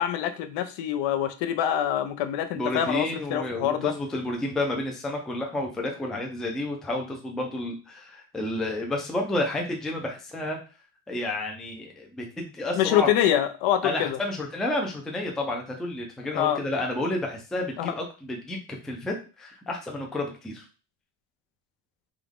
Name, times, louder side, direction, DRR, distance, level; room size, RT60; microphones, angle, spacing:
voice 1, 0.0-3.9 12.7-14.2 16.3-16.6 17.8-17.9, left 11 dB, 70° left, 9 dB, 0.7 m, -25 dB
voice 2, 2.5-10.6 11.1-13.1 13.8-20.7, left 1 dB, ahead, 0 dB, 0.4 m, -30 dB
3.6 x 3.0 x 3.5 m, 0.33 s
cardioid pair, 160°, 45 cm